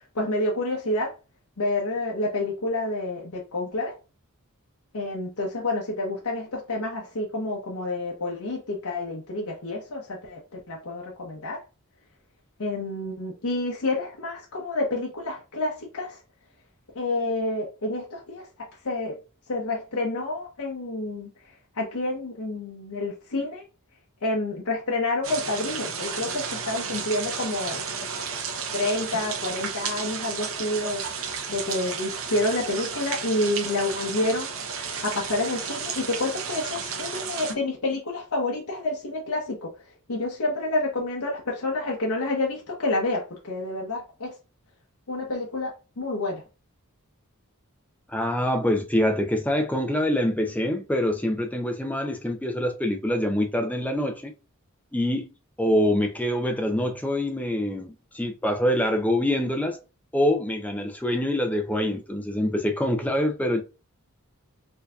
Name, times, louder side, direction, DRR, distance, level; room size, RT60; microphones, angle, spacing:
voice 1, 0.1-1.1 1.6-4.0 4.9-11.6 12.6-16.2 16.9-18.5 18.8-19.2 19.5-21.3 21.8-23.6 24.2-27.8 28.7-31.0 31.5-39.7 40.1-44.3 45.1-46.4, left 2 dB, 75° left, 0.8 m, -29 dB
sound 1, 25.2-37.5, right 6 dB, 60° right, 0.6 m, -33 dB
voice 2, 48.1-54.3 54.9-55.3 55.6-59.8 60.1-63.6, left 1 dB, 5° left, 0.4 m, -25 dB
4.4 x 2.7 x 2.3 m
head